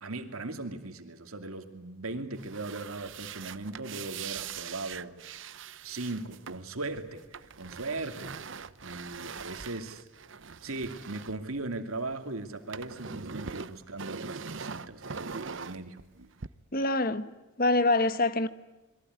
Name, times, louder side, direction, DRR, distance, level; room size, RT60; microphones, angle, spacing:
voice 1, 0.0-5.2 5.8-10.0 10.6-16.0, right 2 dB, 85° right, 2.6 m, -38 dB
sound 1, 2.3-12.1 12.4-16.5, right 6 dB, 60° right, 0.9 m, -42 dB
voice 2, 16.7-18.5, left 2 dB, 45° left, 1.2 m, -26 dB
27.0 x 22.5 x 9.6 m
head